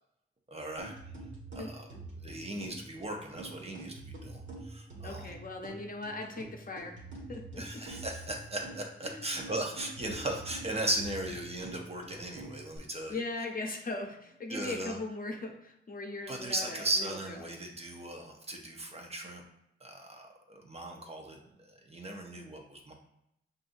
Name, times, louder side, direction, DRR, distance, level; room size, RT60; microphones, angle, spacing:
voice 1, 0.5-0.9 1.5-1.9 2.2-5.3 7.6-13.2 14.5-15.0 16.3-19.4 19.8-22.9, right 1 dB, 30° right, 1 dB, 0.8 m, -37 dB
sound 1, 0.8-12.8, right 2 dB, 65° right, 1.4 m, -46 dB
voice 2, 5.0-7.0 7.3-7.8 9.0-9.3 13.1-17.2, left 2 dB, 40° left, 2 dB, 0.7 m, -39 dB
5.4 x 2.6 x 2.6 m, 0.80 s
cardioid pair, 75°, 21 cm